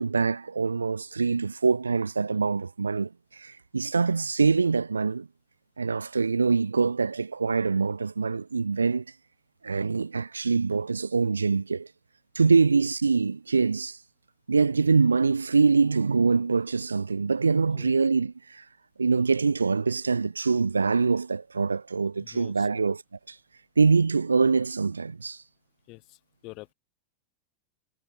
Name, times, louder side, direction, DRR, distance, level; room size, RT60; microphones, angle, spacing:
voice 1, 0.0-5.3 5.8-9.0 9.6-11.9 12.3-14.0 14.5-18.6 19.0-23.0 23.3-23.4 23.8-25.4, right 4 dB, 75° right, 0.3 m, -24 dB
voice 2, 22.2-22.9 25.9-26.7, left 23 dB, 40° left, 1.2 m, -47 dB
figure-of-eight pair, 90°, 0 cm